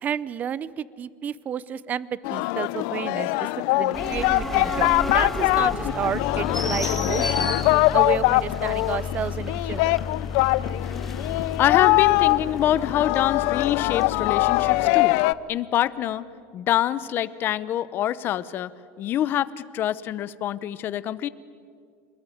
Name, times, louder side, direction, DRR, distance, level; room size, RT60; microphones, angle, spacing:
voice 1, 0.0-3.5 3.8-7.5 7.9-10.0, right 8 dB, 25° right, 19 dB, 0.6 m, -31 dB
Singing, 2.2-15.3, left 20 dB, 65° left, 0.6 m, -23 dB
sound 1, 3.9-14.9, left 3 dB, 5° left, 1.5 m, -32 dB
voice 2, 10.8-15.2 15.5-16.2 16.5-18.7 19.0-21.3, left 12 dB, 35° left, 16 dB, 0.8 m, -26 dB
27.0 x 21.0 x 9.4 m, 2.3 s
cardioid pair, 155°, 6 cm